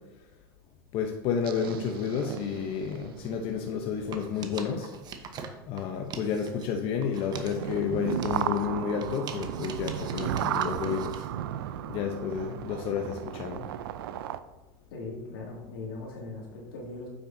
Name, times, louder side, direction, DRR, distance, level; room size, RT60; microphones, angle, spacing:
voice 1, 0.9-4.9 5.7-11.2 11.9-13.7, left 7 dB, 50° left, 3 dB, 0.8 m, -31 dB
sound 1, 1.4-4.2 4.5-4.7 5.6-5.8 6.6-6.7 6.9-7.0 7.3-14.4, right 11 dB, 85° right, 0.4 m, -35 dB
sound 2, 4.1-6.7 7.0-11.3, right 6 dB, 35° right, 0.9 m, -44 dB
voice 2, 14.9-17.1, left 3 dB, 85° left, -2 dB, 2.3 m, -39 dB
8.1 x 6.2 x 2.7 m, 1.1 s
supercardioid pair, 115°, 12 cm